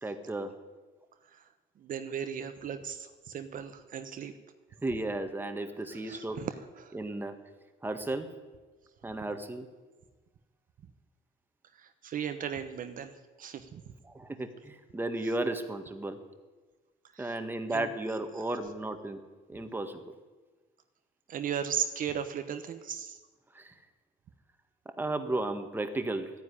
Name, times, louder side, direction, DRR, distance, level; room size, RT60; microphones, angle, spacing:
voice 1, 0.0-0.5 4.8-6.4 6.9-7.3 7.8-8.3 9.0-9.7 14.1-16.2 17.2-19.2 19.5-20.0 23.5-23.7 25.0-26.3, right 2 dB, 10° right, 7 dB, 1.7 m, -34 dB
voice 2, 1.8-4.3 5.9-7.0 11.7-13.1 13.4-13.8 17.1-17.4 17.7-17.9 18.4-18.5 21.3-23.2, right 8 dB, 55° right, 9 dB, 1.1 m, -36 dB
14.0 x 9.9 x 10.0 m, 1.3 s
cardioid pair, 110°, 17 cm